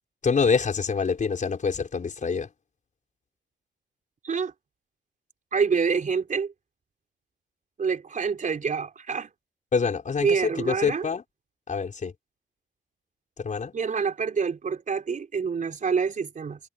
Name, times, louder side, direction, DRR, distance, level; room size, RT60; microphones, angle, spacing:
voice 1, 0.2-2.5 9.7-11.2 11.7-12.1 13.4-13.7, left 5 dB, 40° left, 5.2 m, -26 dB
voice 2, 5.5-6.5 7.8-9.3 10.2-11.1 13.7-16.6, right 5 dB, 40° right, 4.1 m, -26 dB
cardioid pair, 90°, 20 cm